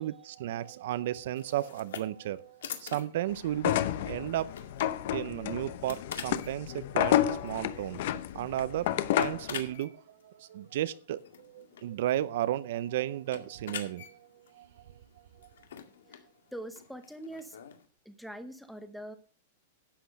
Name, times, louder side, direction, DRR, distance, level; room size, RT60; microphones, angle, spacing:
voice 1, 0.0-3.7 4.1-4.5 5.1-8.0 8.3-14.3 14.5-14.7, right 13 dB, 50° right, 0.6 m, -34 dB
sound 1, 1.4-17.9, left 8 dB, 85° left, 2.0 m, -47 dB
sound 2, 3.5-9.5, left 12 dB, 45° left, 0.8 m, -30 dB
voice 2, 16.5-17.6 18.0-19.2, right 1 dB, ahead, 0.8 m, -43 dB
11.5 x 8.4 x 5.2 m
supercardioid pair, 175°, 0 cm